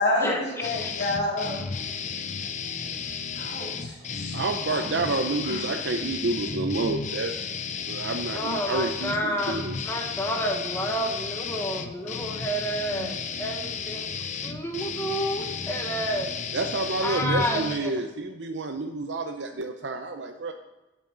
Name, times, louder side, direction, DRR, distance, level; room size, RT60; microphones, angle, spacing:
voice 1, 0.0-1.7 3.4-5.2 5.4-5.6, left 2 dB, 60° left, -4 dB, 2.7 m, -29 dB
sound 1, 0.6-17.8, left 5 dB, 40° left, 0.7 m, -33 dB
voice 2, 4.3-7.4 7.9-9.8 16.5-20.5, right 3 dB, 80° right, 5 dB, 0.7 m, -29 dB
voice 3, 8.3-9.6 9.8-14.0 14.4-16.3 17.0-17.9, equal, 15° left, 1 dB, 1.5 m, -30 dB
11.0 x 8.0 x 4.0 m, 1.1 s
head